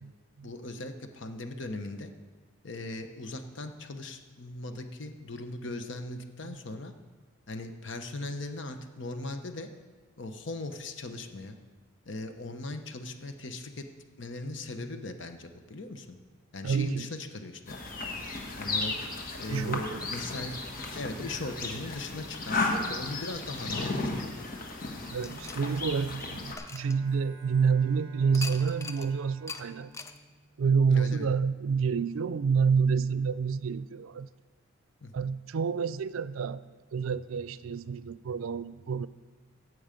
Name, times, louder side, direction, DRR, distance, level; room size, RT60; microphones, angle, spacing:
voice 1, 0.4-2.1 2.6-6.9 7.5-9.7 10.2-11.6 12.1-13.8 14.2-16.2 16.5-17.7 18.6-19.0 19.4-20.6 20.9-24.3 30.9-31.3 35.0-35.1, left 2 dB, 65° left, 7 dB, 1.0 m, -39 dB
voice 2, 16.6-17.1 19.5-20.2 25.1-29.9 30.6-34.3 35.1-36.6 36.9-39.1, right 5 dB, 90° right, 17 dB, 0.4 m, -28 dB
sound 1, 17.7-26.5, left 3 dB, 45° left, 1.4 m, -34 dB
sound 2, 25.2-27.6 28.3-29.1 29.5-29.6 29.9-30.2, left 3 dB, 15° left, 0.5 m, -42 dB
Bowed string instrument, 26.6-31.4, right 2 dB, 25° right, 1.3 m, -53 dB
16.0 x 6.3 x 5.2 m, 1.3 s
head